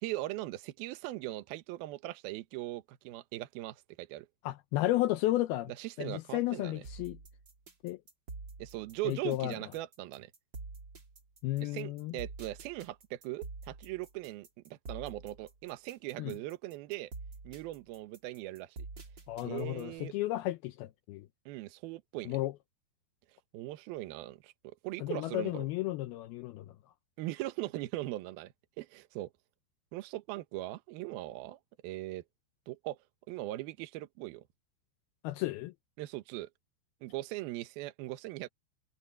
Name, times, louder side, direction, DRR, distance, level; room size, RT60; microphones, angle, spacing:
voice 1, 0.0-4.3 5.8-6.8 8.6-10.3 11.6-17.1 17.4-18.8 19.4-20.1 21.5-22.4 23.5-25.7 27.2-29.3 29.9-32.2 32.7-33.0 33.3-34.5 36.0-36.5 37.0-38.5, right 17 dB, 70° right, 2.5 m, -40 dB
voice 2, 4.4-5.7 6.0-7.2 7.8-8.0 9.0-9.6 11.4-12.1 16.2-16.4 19.3-21.3 22.3-22.5 25.0-26.7 35.2-35.7, left 16 dB, 90° left, 2.1 m, -33 dB
sound 1, 6.8-20.0, right 3 dB, 30° right, 2.7 m, -47 dB
omnidirectional pair, 5.4 m